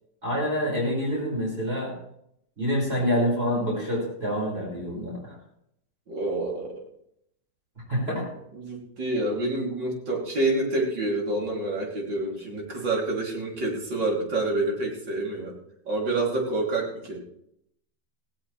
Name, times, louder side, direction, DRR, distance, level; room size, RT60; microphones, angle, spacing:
voice 1, 0.2-1.9 2.6-5.2 7.9-8.2, equal, 30° right, -5 dB, 5.8 m, -26 dB
voice 2, 6.1-6.8 8.5-15.6 15.9-17.2, right 2 dB, 75° right, -2 dB, 3.9 m, -28 dB
18.0 x 16.5 x 3.3 m, 0.77 s
omnidirectional pair, 2.0 m